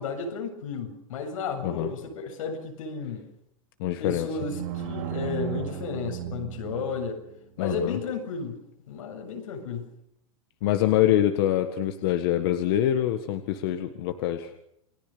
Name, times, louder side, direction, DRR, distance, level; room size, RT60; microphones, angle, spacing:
voice 1, 0.0-3.3 4.0-7.2 7.6-9.9, left 5 dB, 80° left, 4 dB, 7.6 m, -33 dB
voice 2, 3.8-4.3 7.6-8.0 10.6-14.5, left 12 dB, 45° left, 8 dB, 1.7 m, -25 dB
sound 1, 4.3-7.3, right 10 dB, 55° right, 4.9 m, -35 dB
29.0 x 21.0 x 7.0 m, 0.75 s
supercardioid pair, 165°, 17 cm